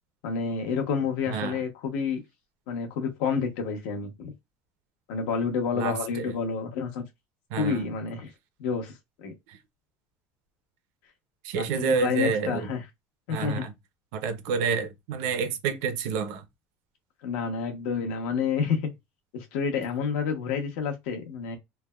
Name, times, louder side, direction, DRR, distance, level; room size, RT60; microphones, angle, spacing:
voice 1, 0.2-2.2 2.7-4.3 5.1-7.0 7.6-8.3 8.6-8.9 9.2-9.3 11.6-12.8 13.3-13.6 17.2-18.9 19.3-21.6, left 6 dB, 80° left, 1.0 m, -29 dB
voice 2, 1.3-1.6 5.8-6.3 7.5-7.9 9.5-9.6 11.4-12.7 13.3-13.7 14.1-16.4, right 6 dB, 75° right, 0.6 m, -29 dB
3.3 x 2.1 x 2.2 m
cardioid pair, 170°, 6 cm